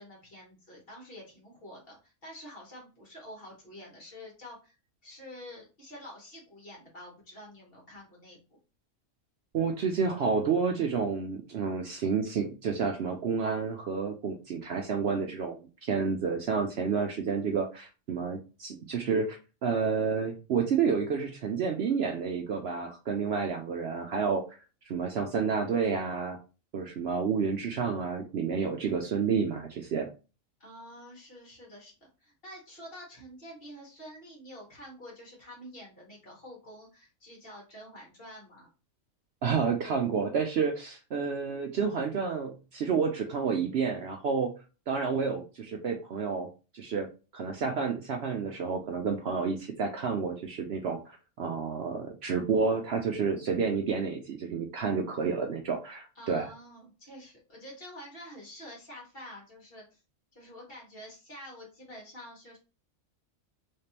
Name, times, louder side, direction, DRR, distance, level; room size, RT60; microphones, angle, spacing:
voice 1, 0.0-4.8 5.0-8.4 30.6-38.7 56.1-60.0 60.3-62.6, equal, 45° left, -2 dB, 1.7 m, -48 dB
voice 2, 9.5-15.6 15.8-24.4 24.9-26.4 26.7-30.1 39.4-44.5 44.9-46.5 46.7-47.1 47.3-56.5, right 5 dB, 65° right, 3 dB, 0.7 m, -30 dB
3.4 x 3.2 x 2.8 m, 0.31 s
omnidirectional pair, 1.4 m